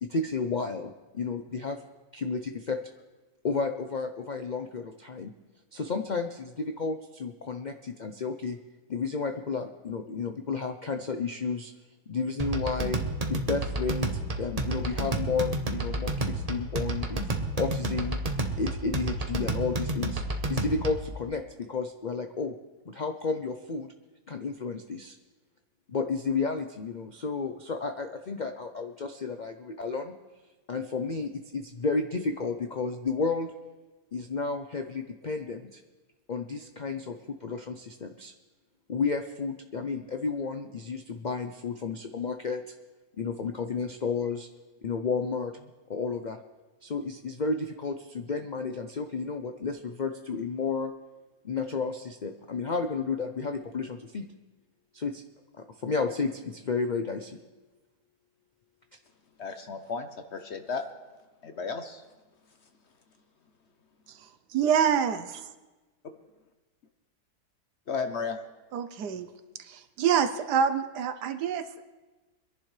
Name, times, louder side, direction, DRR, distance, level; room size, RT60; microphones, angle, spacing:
voice 1, 0.0-1.8 2.1-2.8 3.4-5.3 5.7-8.6 8.9-11.7 12.1-13.0 13.3-14.1 14.4-17.2 17.6-18.2 18.6-20.2 20.5-22.6 22.9-23.9 24.3-25.2 25.9-30.1 30.7-33.5 34.1-35.8 36.3-38.3 38.9-42.6 43.2-44.5 44.8-46.4 46.8-50.9 51.4-54.3 54.9-55.2 55.6-57.4, left 4 dB, 75° left, 0.4 m, -32 dB
sound 1, 12.4-21.1, right 2 dB, 30° right, 0.9 m, -31 dB
voice 2, 59.4-60.9 61.4-62.0 67.9-68.4, left 5 dB, 50° left, 0.9 m, -34 dB
voice 3, 64.5-65.4 68.7-69.3 69.6-71.8, right 7 dB, 80° right, 1.4 m, -26 dB
24.0 x 11.0 x 3.3 m
omnidirectional pair, 1.8 m